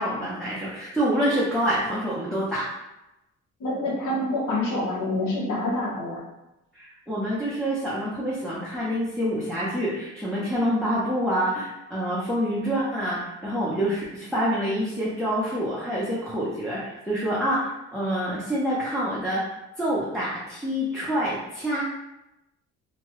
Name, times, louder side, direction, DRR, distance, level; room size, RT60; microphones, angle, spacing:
voice 1, 0.0-2.6 6.7-19.5 19.8-21.8, equal, 5° left, -9 dB, 0.7 m, -27 dB
voice 2, 3.6-6.2, left 1 dB, 75° left, -4 dB, 1.1 m, -27 dB
2.8 x 2.2 x 3.0 m, 0.93 s
cardioid pair, 90°, 30 cm